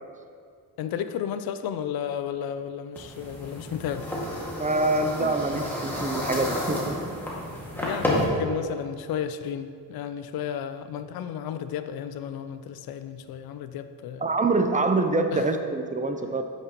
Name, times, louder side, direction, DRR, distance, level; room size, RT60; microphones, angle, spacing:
voice 1, 0.8-4.2 7.8-14.3 15.3-15.5, left 8 dB, 70° left, 11 dB, 0.5 m, -33 dB
sound 1, 3.0-8.2, equal, 5° left, 1.8 m, -31 dB
voice 2, 4.6-7.1 14.2-16.4, right 2 dB, 20° right, 6 dB, 0.5 m, -25 dB
9.6 x 5.9 x 2.9 m, 2.2 s
cardioid pair, 85°, 38 cm